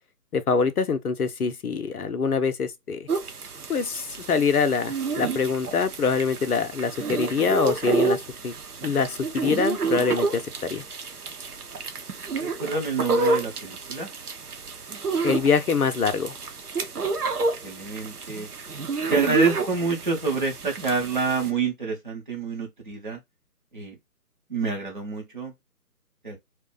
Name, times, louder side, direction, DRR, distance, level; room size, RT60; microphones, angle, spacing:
voice 1, 0.3-3.1 3.7-8.5 8.8-10.8 15.2-16.3, left 5 dB, 65° left, 0.5 m, -24 dB
sound 1, 3.1-21.5, right 4 dB, 70° right, 0.7 m, -29 dB
voice 2, 12.4-14.1 17.6-18.5 19.1-23.2 23.7-23.9 24.5-25.5 26.2-26.4, right 4 dB, 35° right, 0.7 m, -27 dB
2.3 x 2.1 x 3.7 m
figure-of-eight pair, 150°, 48 cm